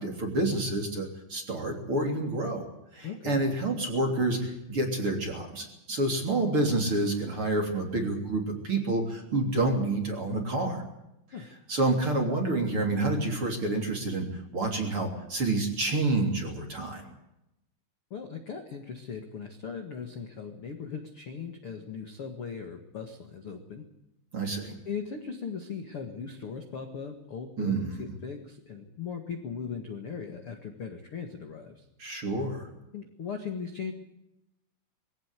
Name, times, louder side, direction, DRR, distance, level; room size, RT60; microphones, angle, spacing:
voice 1, 0.0-2.7 2.9-10.8 11.7-17.1 24.3-24.7 27.6-28.1 32.0-32.7, right 2 dB, 30° right, 3 dB, 3.5 m, -28 dB
voice 2, 3.0-3.4 11.3-11.5 18.1-23.8 24.8-31.8 32.9-33.9, left 6 dB, 55° left, 4 dB, 1.6 m, -38 dB
22.0 x 17.0 x 8.3 m, 0.86 s
omnidirectional pair, 5.5 m